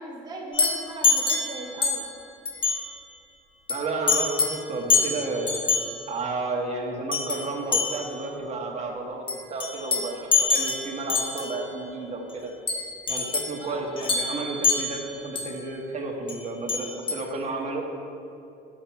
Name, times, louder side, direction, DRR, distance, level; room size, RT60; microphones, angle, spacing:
voice 1, 0.0-2.0 13.6-13.9, right 2 dB, 25° right, -4 dB, 1.3 m, -38 dB
sound 1, 0.5-2.2 2.4-2.9 3.7-3.8 4.1-4.6 4.9-5.9 7.1-7.4 7.7-8.2 9.3-11.6 12.7-13.6 14.0-15.5 16.3-16.4 16.7-17.2, left 5 dB, 30° left, 1.3 m, -25 dB
voice 2, 3.7-5.6 6.1-12.5 13.1-17.8, right 3 dB, 40° right, 0 dB, 1.5 m, -32 dB
10.0 x 7.5 x 4.6 m, 2.8 s
cardioid pair, 110°, 17 cm